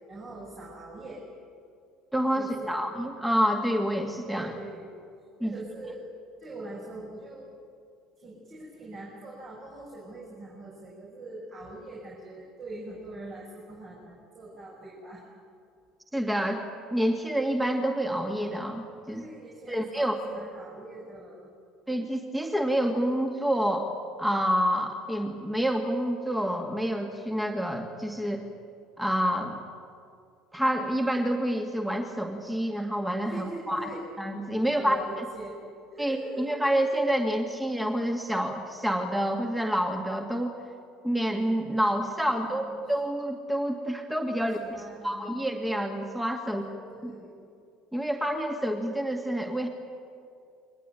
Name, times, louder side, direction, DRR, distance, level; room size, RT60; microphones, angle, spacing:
voice 1, 0.1-1.2 2.3-2.8 4.3-4.9 5.4-6.0 6.4-7.5 8.2-15.2 19.1-21.5 33.2-34.0 34.6-35.6 35.9-36.6 42.3-42.9 44.4-45.4 46.4-47.4, right 2 dB, 40° right, -3 dB, 5.8 m, -43 dB
voice 2, 2.1-4.5 5.4-5.5 16.1-16.7 16.9-19.3 19.7-20.2 21.9-23.9 24.2-28.5 29.0-29.6 30.5-33.9 34.2-35.2 36.0-40.6 41.0-44.6 45.0-46.6 47.0-47.1 47.9-49.7, equal, 5° right, 3 dB, 2.3 m, -28 dB
22.5 x 20.0 x 9.2 m, 2.4 s
figure-of-eight pair, 60°, 0 cm